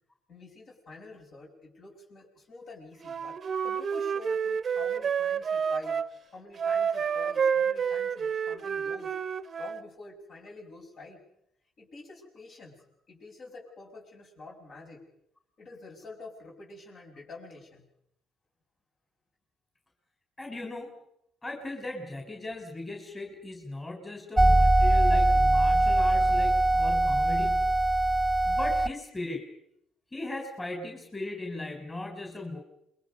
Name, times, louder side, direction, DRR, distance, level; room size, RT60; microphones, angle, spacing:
voice 1, 0.3-6.1 6.3-9.2 9.6-11.2 11.8-15.1 15.6-17.9, left 3 dB, 55° left, 0 dB, 6.8 m, -47 dB
Wind instrument woodwind instrument, 3.0-6.1 6.6-9.8, right 7 dB, 45° right, 0.9 m, -29 dB
voice 2, 20.4-20.9 21.4-27.7 28.4-29.4 30.1-32.6, left 2 dB, 20° left, 3 dB, 3.9 m, -37 dB
sound 1, 24.4-28.9, right 2 dB, 5° right, 1.5 m, -22 dB
28.0 x 22.0 x 5.4 m, 0.79 s
supercardioid pair, 70°, 0 cm